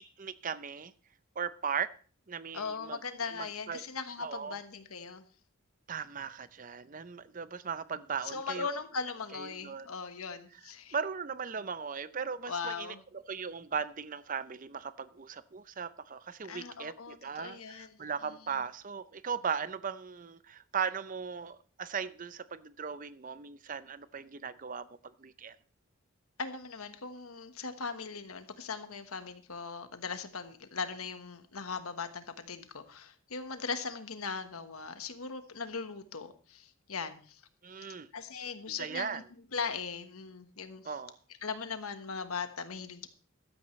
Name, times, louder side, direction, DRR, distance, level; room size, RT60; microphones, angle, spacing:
voice 1, 0.2-0.9 1.4-1.9 2.3-3.0 3.3-3.8 4.2-4.6 5.9-8.7 9.3-9.9 10.9-25.6 37.6-38.1 38.8-39.2 40.8-41.2, right 6 dB, 40° right, 15 dB, 0.6 m, -38 dB
voice 2, 2.5-5.2 8.2-11.0 12.5-13.0 16.5-18.0 26.4-37.4 37.8-37.9 38.1-39.2 39.5-40.9 41.4-43.1, left 5 dB, 90° left, 9 dB, 1.3 m, -39 dB
15.0 x 12.5 x 3.2 m, 0.39 s
head